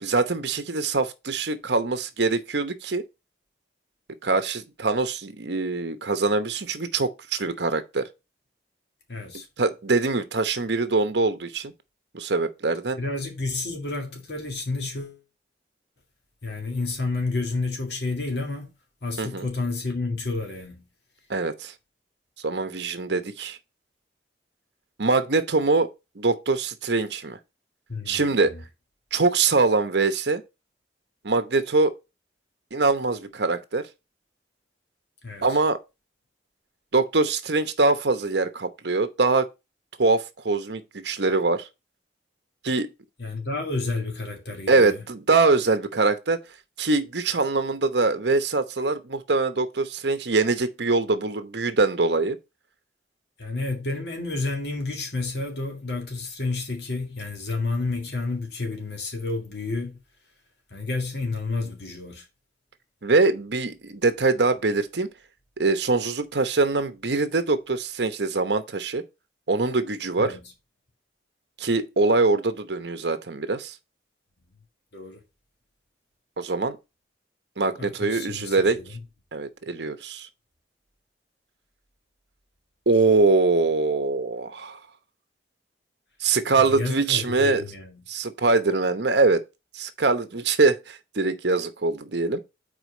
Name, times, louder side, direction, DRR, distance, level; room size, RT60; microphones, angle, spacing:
voice 1, 0.0-3.0 4.2-8.1 9.6-11.7 12.1-13.0 19.2-19.5 21.3-21.7 22.4-23.6 25.0-25.9 26.2-27.4 28.1-28.5 29.1-30.4 31.2-31.9 32.7-33.9 35.4-35.8 36.9-39.5 40.0-41.7 42.6-42.9 44.7-46.4 46.8-52.4 63.0-65.1 65.6-69.0 69.5-70.4 71.6-73.7 76.4-76.8 77.6-78.8 79.3-80.3 82.9-84.8 86.2-87.6 88.1-89.4 89.7-92.4, right 3 dB, 65° right, 0.9 m, -23 dB
voice 2, 9.1-9.5 13.0-15.2 16.4-18.7 19.0-20.8 27.9-28.6 35.2-35.6 43.2-45.0 53.4-60.0 60.7-62.3 70.2-70.4 74.9-75.2 77.8-78.9 86.6-88.0, left 3 dB, 60° left, 2.0 m, -30 dB
5.0 x 4.6 x 6.1 m
head